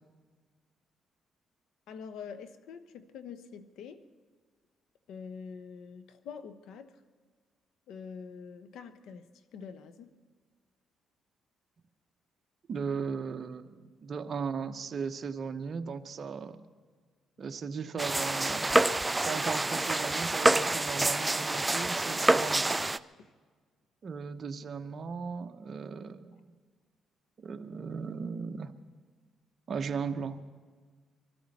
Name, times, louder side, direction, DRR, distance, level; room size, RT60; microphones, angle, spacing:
voice 1, 1.9-4.0 5.1-7.0 7.9-9.3 9.5-10.1 23.2-23.3, left 6 dB, 80° left, 10 dB, 1.0 m, -45 dB
voice 2, 12.7-16.6 17.4-18.7 19.2-22.7 24.0-26.4 27.4-28.7 29.7-30.4, right 5 dB, 50° right, 7 dB, 1.0 m, -37 dB
sound 1, 18.0-23.0, right 2 dB, 15° right, 0.4 m, -27 dB
24.0 x 13.5 x 4.2 m, 1.5 s
cardioid pair, 90°, 0 cm